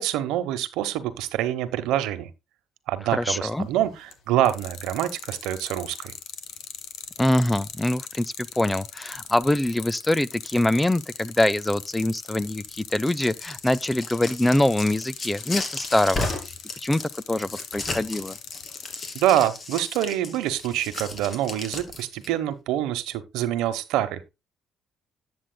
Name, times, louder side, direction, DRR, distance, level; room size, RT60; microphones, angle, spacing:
voice 1, 0.0-2.3 2.9-6.1 19.1-24.3, right 12 dB, 90° right, 0.9 m, -26 dB
voice 2, 3.1-3.7 7.2-16.3 16.8-17.0 17.3-18.4, left 1 dB, 10° left, 0.4 m, -24 dB
sound 1, 3.7-4.1 4.5-19.3, left 8 dB, 70° left, 1.7 m, -39 dB
sound 2, 12.9-22.3, left 2 dB, 35° left, 2.7 m, -34 dB
11.5 x 7.9 x 2.2 m
cardioid pair, 90°, 0 cm